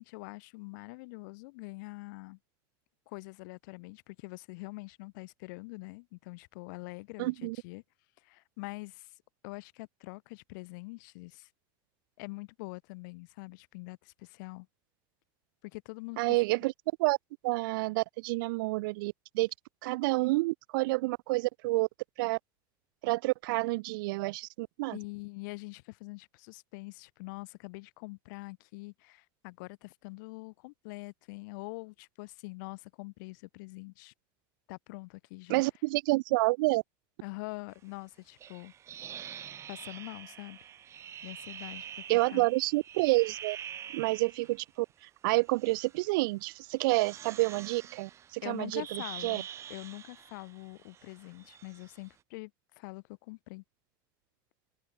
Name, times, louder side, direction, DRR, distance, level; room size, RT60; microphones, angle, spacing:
voice 1, 0.0-2.4 3.1-7.8 8.2-9.1 9.4-11.5 12.2-14.7 15.6-16.4 24.9-34.1 34.7-35.6 37.2-38.7 39.7-40.6 41.2-42.5 48.4-52.5 52.8-53.6, left 27 dB, 65° left, 4.2 m, -44 dB
voice 2, 7.2-7.6 16.2-16.7 17.0-17.2 17.4-19.5 19.8-21.9 22.2-22.4 23.0-25.0 35.5-36.8 42.1-43.6 43.9-44.9 45.2-49.4, right 22 dB, 75° right, 0.4 m, -29 dB
sound 1, 38.4-44.6 45.4-46.0 46.7-52.1, right 9 dB, 25° right, 4.3 m, -46 dB
supercardioid pair, 165°, 11 cm